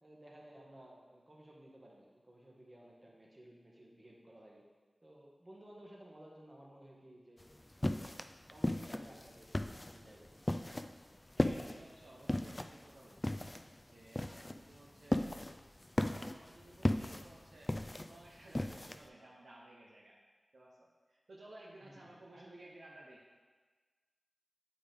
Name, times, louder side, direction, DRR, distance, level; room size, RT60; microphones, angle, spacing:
voice 1, 0.0-4.6 5.0-7.4 7.8-8.2 8.5-10.4 21.8-22.6, right 1 dB, 35° right, -2 dB, 1.5 m, -57 dB
sound 1, 7.4-19.1, left 1 dB, 25° left, 0.4 m, -37 dB
voice 2, 11.4-13.4 13.9-15.4 16.0-17.7 18.1-20.2 20.5-23.2, right 1 dB, 75° right, -3 dB, 0.8 m, -57 dB
7.6 x 5.0 x 3.5 m, 1.4 s
cardioid pair, 40°, 0 cm